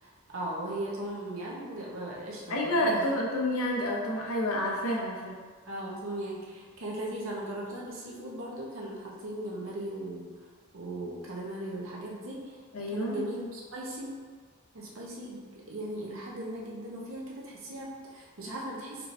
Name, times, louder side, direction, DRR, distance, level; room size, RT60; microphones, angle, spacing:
voice 1, 0.0-3.1 5.7-10.3 10.7-12.5 12.9-14.1 14.7-19.1, right 1 dB, 70° right, -3 dB, 0.9 m, -38 dB
voice 2, 2.5-5.4 12.7-13.2, left 1 dB, 85° left, -1 dB, 0.7 m, -29 dB
4.5 x 3.3 x 2.6 m, 1.5 s
head